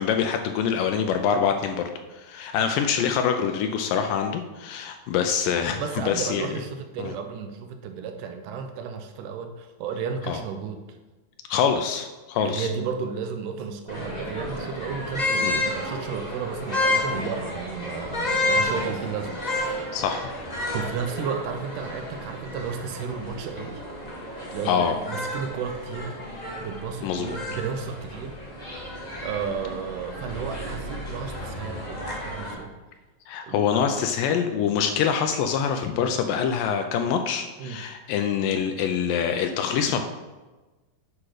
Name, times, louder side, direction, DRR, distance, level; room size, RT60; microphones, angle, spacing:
voice 1, 0.0-6.5 7.0-7.1 10.3-10.4 11.5-12.7 15.4-15.6 17.1-17.3 19.9-20.4 24.7-24.9 27.0-27.4 33.3-40.0, left 7 dB, 80° left, 6 dB, 2.1 m, -25 dB
voice 2, 5.8-10.8 12.4-19.9 20.7-23.8 24.5-26.2 26.6-28.4 29.2-32.7 33.4-33.7 37.6-37.8, right 6 dB, 75° right, 6 dB, 2.0 m, -33 dB
sound 1, 13.9-32.5, left 1 dB, 60° left, 0.4 m, -31 dB
8.5 x 6.0 x 4.8 m, 1.2 s
omnidirectional pair, 4.1 m